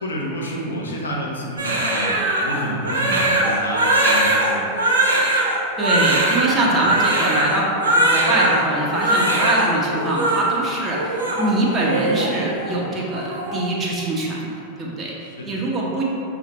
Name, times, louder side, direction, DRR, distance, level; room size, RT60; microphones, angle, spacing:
voice 1, 0.0-4.7 15.4-15.6, equal, 75° left, -3 dB, 0.6 m, -29 dB
Crying sobbing, 1.6-8.6 8.9-9.7 9.9-10.4 10.9-12.3 12.6-12.8 13.1-13.6, right 1 dB, 70° right, 0.6 m, -20 dB
voice 2, 5.8-14.5 14.8-16.0, right 1 dB, 20° right, -4 dB, 0.7 m, -23 dB
5.6 x 2.1 x 2.8 m, 2.6 s
figure-of-eight pair, 90°, 0 cm